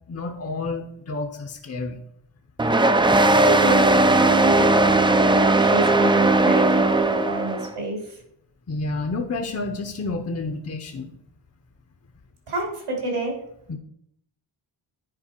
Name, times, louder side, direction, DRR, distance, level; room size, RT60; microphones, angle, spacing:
voice 1, 0.1-2.0 8.7-11.1 13.7-13.8, left 3 dB, 30° left, 4 dB, 0.7 m, -30 dB
sound 1, 2.6-7.7, right 2 dB, 10° right, 0.3 m, -18 dB
voice 2, 3.3-3.9 4.2-8.2 12.5-13.3, right 2 dB, 90° right, 0 dB, 3.1 m, -28 dB
10.0 x 4.5 x 4.4 m, 0.73 s
wide cardioid pair, 100°, 49 cm